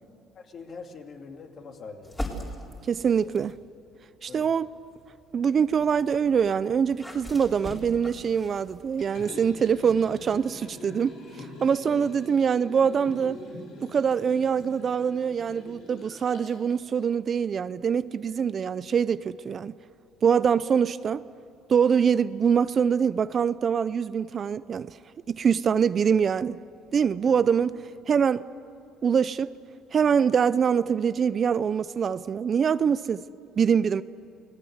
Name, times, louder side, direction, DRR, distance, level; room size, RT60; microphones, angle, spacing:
voice 1, 0.4-2.2 4.3-4.5 11.9-12.0 26.1-26.2 27.2-27.4, left 5 dB, 45° left, 2.7 m, -43 dB
sound 1, 2.0-3.6 4.3-10.5, left 1 dB, 10° left, 4.2 m, -42 dB
voice 2, 2.9-3.5 4.2-4.7 5.3-13.4 13.8-19.7 20.2-21.2 21.7-24.9 25.3-26.6 26.9-27.8 28.1-28.4 29.0-29.5 29.9-33.2 33.6-34.0, right 7 dB, 40° right, 0.5 m, -24 dB
Liquid, 9.0-16.7 17.1-17.2, left 2 dB, 75° left, 7.4 m, -44 dB
29.0 x 19.0 x 8.1 m
cardioid pair, 110°, 0 cm